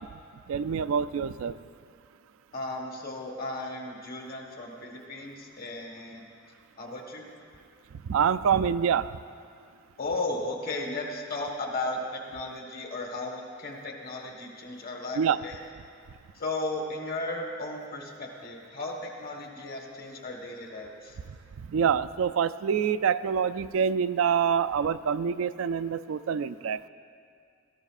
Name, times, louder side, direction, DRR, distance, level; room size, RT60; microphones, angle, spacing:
voice 1, 0.5-1.5 8.1-9.1 15.2-15.4 21.7-26.9, right 7 dB, 85° right, 13 dB, 0.4 m, -26 dB
voice 2, 2.5-6.3 6.8-7.2 10.0-15.6 16.3-21.2, left 2 dB, 45° left, 1 dB, 1.4 m, -35 dB
17.5 x 13.5 x 2.5 m, 2.3 s
head